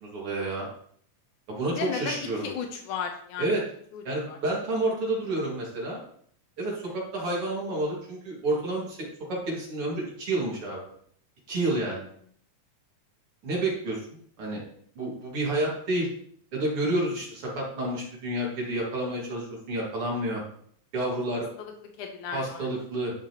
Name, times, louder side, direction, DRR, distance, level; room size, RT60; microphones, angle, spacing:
voice 1, 0.0-0.7 1.5-2.5 3.4-3.6 4.0-6.0 6.6-10.9 11.5-12.0 13.4-14.0 14.4-14.6 15.0-16.1 16.5-20.4 20.9-21.5 22.3-23.1, right 1 dB, 50° right, -3 dB, 3.0 m, -29 dB
voice 2, 1.7-3.5 3.9-4.4 6.9-7.0 21.6-21.7 22.0-22.7, left 7 dB, 85° left, 3 dB, 2.4 m, -35 dB
11.0 x 6.6 x 3.0 m, 0.62 s
omnidirectional pair, 3.4 m